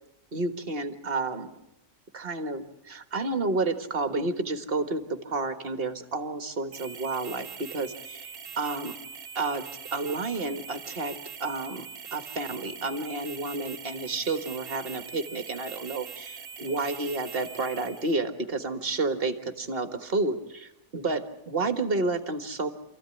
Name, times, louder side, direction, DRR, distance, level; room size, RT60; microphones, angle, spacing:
voice 1, 0.3-1.5 2.1-8.9 9.4-9.6 9.9-11.9 12.1-22.7, right 3 dB, 45° right, 9 dB, 1.8 m, -30 dB
sound 1, 6.7-18.1, right 6 dB, 70° right, 1.6 m, -43 dB
28.0 x 15.0 x 9.9 m, 0.89 s
omnidirectional pair, 1.4 m